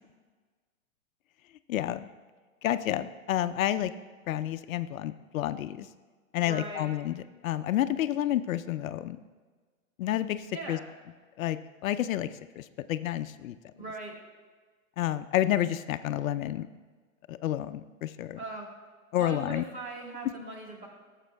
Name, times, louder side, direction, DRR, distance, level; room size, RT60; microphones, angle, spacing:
voice 1, 1.7-2.1 2.6-3.9 4.3-5.9 6.3-7.2 7.4-9.2 10.0-10.8 11.4-12.3 12.6-13.6 15.0-16.7 17.3-18.4 19.1-19.6, left 12 dB, 75° left, 12 dB, 0.5 m, -29 dB
voice 2, 6.4-6.9 10.5-10.8 13.8-14.2 18.4-18.7 19.1-20.9, right 2 dB, 35° right, 0 dB, 1.6 m, -40 dB
14.5 x 7.3 x 2.3 m, 1.4 s
hypercardioid pair, 160°, 41 cm